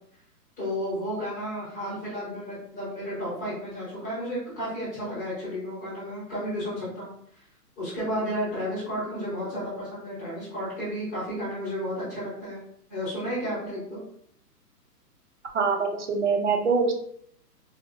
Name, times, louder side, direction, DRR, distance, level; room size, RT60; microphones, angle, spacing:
voice 1, 0.6-7.1 7.8-12.6 12.9-14.0, equal, 10° left, -11 dB, 0.8 m, -32 dB
voice 2, 15.5-16.9, right 4 dB, 50° right, 2 dB, 0.6 m, -24 dB
4.0 x 2.1 x 2.4 m, 0.67 s
hypercardioid pair, 180°, 49 cm